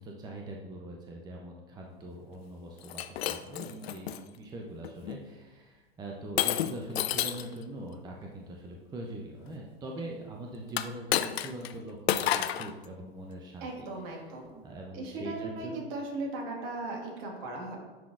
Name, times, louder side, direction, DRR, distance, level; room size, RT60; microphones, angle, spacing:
voice 1, 0.0-14.2 14.6-15.8, right 1 dB, 15° right, 0 dB, 0.6 m, -42 dB
Shatter, 2.8-4.2 4.8-5.2 6.4-7.5 10.7-11.7 12.1-12.7, left 11 dB, 75° left, 0.5 m, -30 dB
voice 2, 13.6-14.6 14.9-17.8, right 2 dB, 55° right, 0 dB, 1.8 m, -37 dB
10.0 x 3.9 x 2.5 m, 1.2 s
hypercardioid pair, 110°, 31 cm